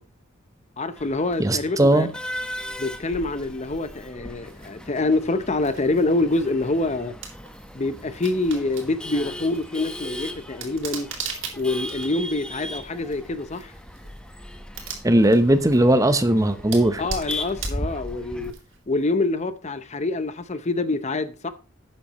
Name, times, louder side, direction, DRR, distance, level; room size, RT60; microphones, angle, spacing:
voice 1, 0.8-2.1 2.8-7.1 7.7-11.1 11.5-13.7 17.0-18.5 18.9-21.5, left 2 dB, 35° left, 0.8 m, -26 dB
Male speech man speaking / Laughter / Chatter, 1.0-18.5, left 1 dB, 5° left, 1.1 m, -37 dB
voice 2, 1.4-2.1 15.0-17.0, right 1 dB, 15° right, 0.8 m, -18 dB
sound 1, 4.4-19.0, right 5 dB, 65° right, 3.6 m, -41 dB
12.5 x 8.8 x 3.1 m
head